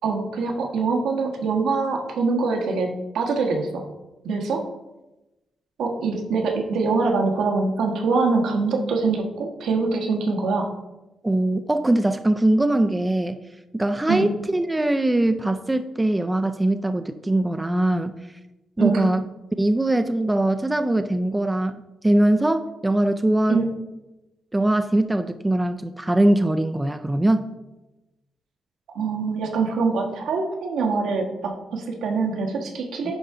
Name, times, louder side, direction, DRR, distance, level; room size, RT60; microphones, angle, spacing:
voice 1, 0.0-3.9 4.2-4.6 5.8-10.7 14.1-14.3 18.8-19.0 23.5-23.7 28.9-33.2, right 4 dB, 80° right, 2 dB, 1.3 m, -24 dB
voice 2, 11.2-13.4 13.7-18.1 18.8-19.2 19.6-23.6 24.5-27.5, right 1 dB, 10° right, 8 dB, 0.3 m, -21 dB
10.0 x 4.6 x 3.7 m, 1.0 s
cardioid pair, 160°, 0 cm